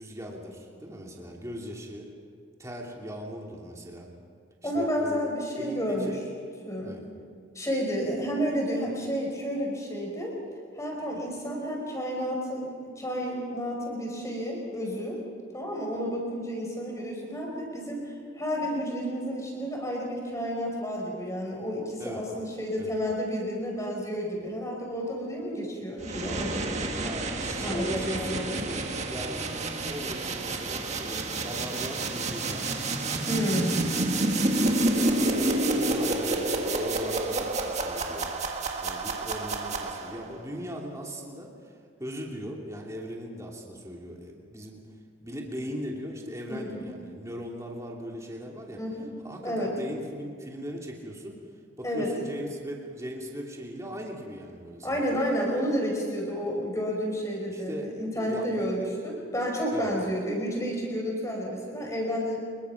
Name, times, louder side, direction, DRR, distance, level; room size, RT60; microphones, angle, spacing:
voice 1, 0.0-2.1 2.6-4.1 4.6-5.3 5.6-6.2 6.8-7.0 22.0-22.2 22.8-22.9 27.0-29.4 29.9-33.3 34.2-38.3 38.8-44.8 45.2-48.8 49.2-51.4 51.8-55.2 57.5-58.7 59.7-59.9, equal, 15° right, -1 dB, 2.8 m, -39 dB
voice 2, 4.6-6.1 6.7-7.0 7.6-10.3 10.8-15.2 15.5-18.0 18.4-26.8 27.6-28.6 33.3-33.9 37.4-37.5 46.5-46.9 48.7-49.1 49.4-49.7 51.8-52.1 54.8-62.4, equal, 15° left, 0 dB, 5.2 m, -31 dB
sound 1, 26.0-40.3, right 2 dB, 35° right, 1.7 m, -29 dB
26.0 x 22.5 x 6.0 m, 2.2 s
head